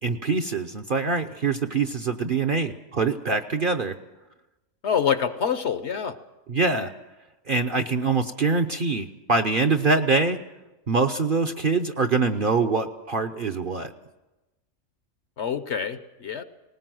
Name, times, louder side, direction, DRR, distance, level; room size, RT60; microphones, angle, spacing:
voice 1, 0.0-4.0 6.5-6.9 7.5-10.4 10.9-13.9, right 4 dB, 45° right, 6 dB, 0.8 m, -24 dB
voice 2, 4.8-6.2 15.4-16.4, left 7 dB, 55° left, 12 dB, 1.0 m, -26 dB
20.0 x 19.0 x 7.7 m, 1.1 s
omnidirectional pair, 1.5 m